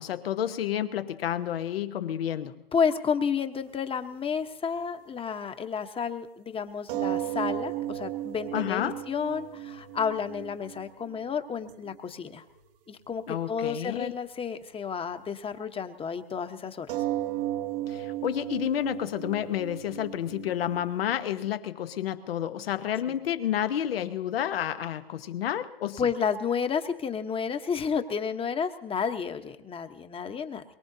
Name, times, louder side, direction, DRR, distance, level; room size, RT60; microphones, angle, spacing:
voice 1, 0.0-2.6 8.5-9.0 13.3-14.1 17.9-26.1, left 10 dB, 80° left, 9 dB, 1.2 m, -30 dB
voice 2, 2.7-12.4 12.9-17.0 23.1-23.2 26.0-30.6, left 6 dB, 20° left, 9 dB, 1.1 m, -31 dB
sound 1, 3.8-3.9 6.9-12.0 12.3-12.7 13.0-13.2 16.9-21.5, right 13 dB, 65° right, 1.3 m, -35 dB
23.0 x 22.5 x 2.8 m, 0.88 s
hypercardioid pair, 105°, 29 cm